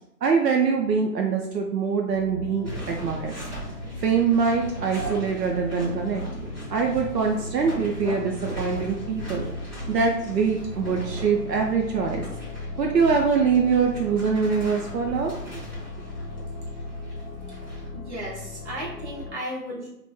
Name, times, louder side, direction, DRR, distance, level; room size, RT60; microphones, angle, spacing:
voice 1, 0.2-3.3 4.0-6.2 6.7-9.5 9.9-12.3 12.8-15.6, right 5 dB, 75° right, 1 dB, 0.5 m, -24 dB
sound 1, 2.1-19.3, left 2 dB, 40° left, 0.8 m, -38 dB
sound 2, 2.6-17.9, right 1 dB, 30° right, 1.2 m, -39 dB
voice 2, 17.9-19.9, equal, 45° right, -4 dB, 0.7 m, -34 dB
2.1 x 2.0 x 3.0 m, 0.81 s
figure-of-eight pair, 170°, 50 cm